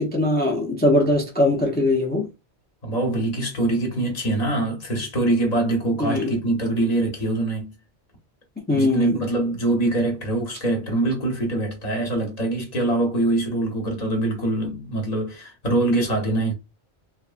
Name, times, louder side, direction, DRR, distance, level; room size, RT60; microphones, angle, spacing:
voice 1, 0.0-2.3 6.0-6.3 8.7-9.2, left 1 dB, 15° left, 0.3 m, -21 dB
voice 2, 2.8-7.7 8.7-16.5, right 2 dB, 40° left, 0.9 m, -23 dB
3.2 x 2.0 x 2.4 m
omnidirectional pair, 1.1 m